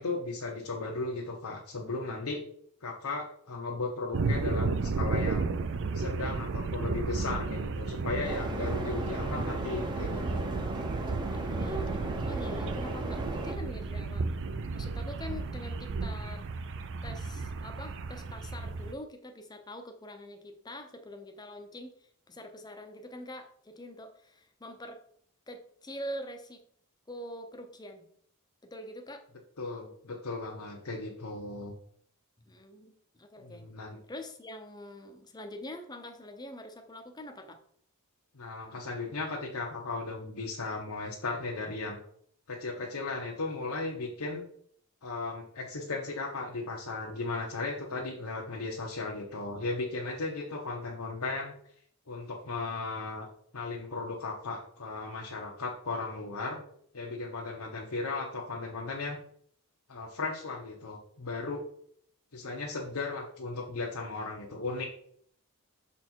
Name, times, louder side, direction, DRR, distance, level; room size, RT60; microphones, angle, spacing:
voice 1, 0.0-2.4 2.8-5.5 5.9-10.5 29.6-31.8 33.4-34.0 38.3-42.0 42.5-44.4 45.0-51.5 52.1-53.3 53.5-56.6 56.9-59.2 59.9-61.6 62.3-64.9, left 3 dB, 80° left, -2 dB, 1.0 m, -36 dB
sound 1, 4.1-18.9, right 4 dB, 60° right, 0.4 m, -33 dB
sound 2, 8.2-13.5, right 1 dB, 20° right, 0.8 m, -36 dB
voice 2, 11.3-14.3 14.7-16.4 17.0-25.0 25.5-26.6 27.1-28.1 28.6-29.2 32.5-33.6 34.1-37.6, left 1 dB, 20° left, 6 dB, 0.7 m, -44 dB
6.6 x 4.2 x 4.5 m, 0.63 s
head